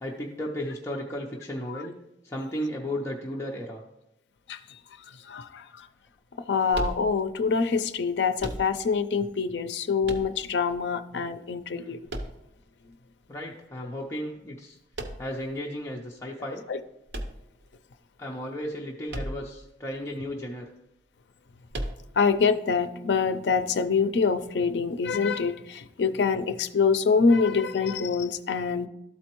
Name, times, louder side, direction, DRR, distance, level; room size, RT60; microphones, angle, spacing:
voice 1, 0.0-1.9 2.2-3.8 11.7-12.0 13.3-14.8 15.2-16.6 18.2-20.7, equal, 15° left, -3 dB, 0.6 m, -34 dB
voice 2, 5.3-5.9 6.5-12.0 16.7-16.8 22.2-28.9, left 5 dB, 70° left, 10 dB, 0.4 m, -25 dB
sound 1, 6.7-7.5 8.4-9.1 10.0-10.8 12.1-12.9 14.9-15.5 17.1-18.0 19.1-19.7 19.9-20.0 21.7-22.3, right 1 dB, 65° right, 0.8 m, -36 dB
12.5 x 4.2 x 3.0 m, 0.87 s
head